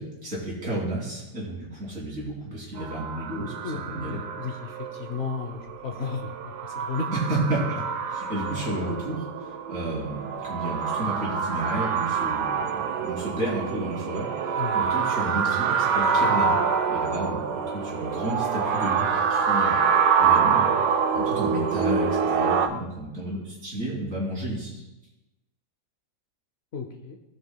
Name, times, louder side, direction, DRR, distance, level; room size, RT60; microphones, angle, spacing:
voice 1, 0.0-4.2 7.3-7.8 8.1-14.3 14.7-16.6 16.9-20.7 21.1-24.8, right 1 dB, 50° right, -5 dB, 3.4 m, -32 dB
sound 1, 2.8-22.7, right 6 dB, 85° right, 1.3 m, -26 dB
voice 2, 3.6-6.3 6.6-7.1 14.6-14.8 21.2-21.5 26.7-27.2, left 5 dB, 60° left, 5 dB, 0.6 m, -34 dB
17.5 x 6.3 x 2.2 m, 1.0 s
omnidirectional pair, 1.8 m